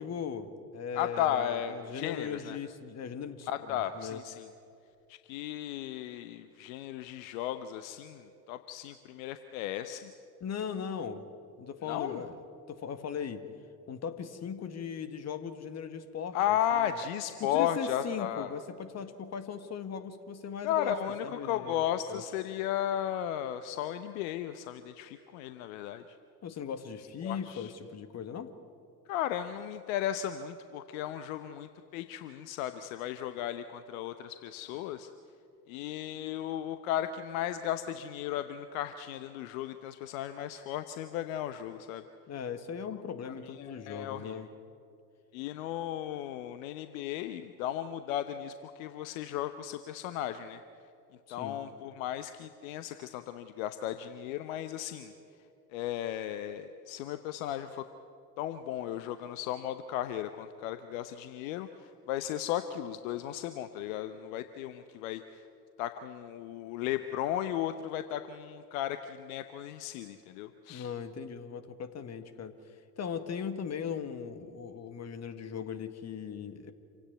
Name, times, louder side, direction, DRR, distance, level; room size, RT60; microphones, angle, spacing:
voice 1, 0.0-4.2 10.4-11.2 11.6-12.4 12.7-13.4 13.9-16.6 17.4-21.0 21.2-21.8 22.1-22.2 26.4-28.5 42.3-44.5 51.3-51.6 70.7-72.5 73.0-76.7, left 7 dB, 35° left, 11 dB, 1.8 m, -38 dB
voice 2, 0.9-2.6 3.5-4.5 5.1-10.1 11.8-12.2 16.3-18.5 20.6-26.2 27.2-27.7 29.1-35.1 35.7-42.0 43.2-44.5 45.3-50.6 51.3-55.1 55.7-57.9 58.4-65.5 65.8-70.9, left 11 dB, 55° left, 11 dB, 1.0 m, -35 dB
27.0 x 17.0 x 9.4 m, 2.5 s
figure-of-eight pair, 65°, 48 cm